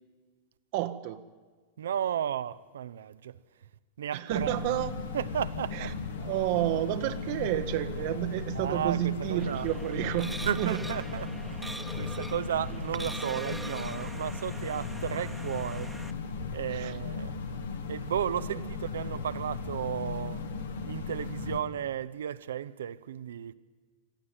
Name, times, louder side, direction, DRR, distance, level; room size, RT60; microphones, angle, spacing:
voice 1, 0.7-1.2 4.1-4.9 5.7-5.9 6.2-10.8 16.7-16.9 18.5-18.6, right 14 dB, 50° right, 0.9 m, -30 dB
voice 2, 1.8-3.4 4.0-4.6 5.1-5.9 8.5-9.7 10.4-16.0 16.5-17.3 17.9-20.4 20.9-23.5, right 9 dB, 65° right, 0.6 m, -34 dB
sound 1, 4.3-21.6, left 4 dB, 65° left, 1.7 m, -37 dB
sound 2, 9.4-16.1, right 1 dB, 5° right, 1.2 m, -43 dB
22.0 x 14.0 x 9.3 m
figure-of-eight pair, 90°, 0 cm